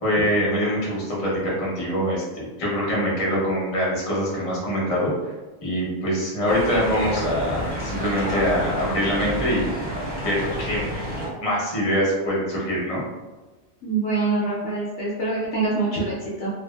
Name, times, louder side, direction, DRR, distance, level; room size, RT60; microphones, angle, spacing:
voice 1, 0.0-5.1 5.6-9.7 10.2-10.9 11.4-13.0, equal, 30° left, -6 dB, 0.6 m, -24 dB
sound 1, 6.4-11.3, equal, 30° right, 0.4 m, -29 dB
voice 2, 13.8-16.5, right 3 dB, 65° left, -7 dB, 0.8 m, -25 dB
2.5 x 2.5 x 2.2 m, 1.2 s
omnidirectional pair, 1.5 m